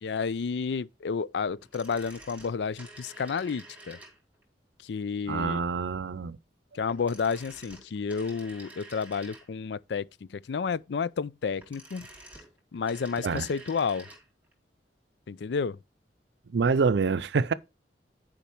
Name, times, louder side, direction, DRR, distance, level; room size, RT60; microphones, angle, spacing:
voice 1, 0.0-4.0 4.8-5.7 6.7-12.1 12.7-14.1 15.3-15.8, left 5 dB, 75° left, 0.4 m, -31 dB
sound 1, 1.6-4.4 6.8-9.8 11.4-14.3 14.5-14.6, right 2 dB, 10° right, 2.6 m, -49 dB
voice 2, 5.3-6.4 13.2-13.5 16.5-17.5, right 5 dB, 80° right, 0.5 m, -26 dB
10.0 x 5.2 x 4.4 m
head